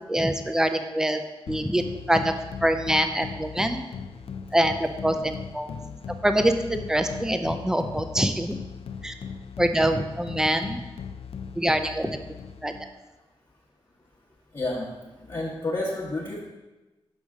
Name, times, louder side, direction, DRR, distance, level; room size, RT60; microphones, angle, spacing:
voice 1, 0.1-1.2 1.5-2.3 2.6-3.8 4.5-5.7 6.2-8.6 9.0-9.1 9.6-10.8 11.6-12.2 12.6-12.7, right 1 dB, 5° right, 7 dB, 0.5 m, -24 dB
sound 1, 1.5-13.0, left 6 dB, 75° left, 0.4 m, -38 dB
voice 2, 14.5-14.9 15.1-16.5, left 2 dB, 40° left, -6 dB, 1.1 m, -30 dB
6.3 x 5.3 x 3.6 m, 1.1 s
cardioid pair, 70°, 10 cm